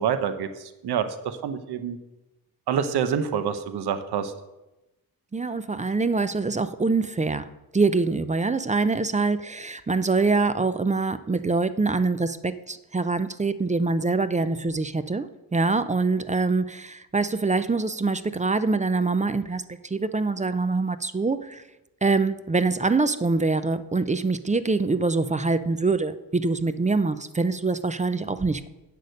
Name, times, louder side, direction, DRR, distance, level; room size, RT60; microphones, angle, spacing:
voice 1, 0.0-2.0 2.7-4.3, right 7 dB, 75° right, 10 dB, 0.8 m, -27 dB
voice 2, 5.3-7.4 7.7-21.6 22.0-28.7, right 3 dB, 20° right, 13 dB, 0.5 m, -24 dB
8.3 x 6.4 x 6.5 m, 0.98 s
cardioid pair, 70°, 40 cm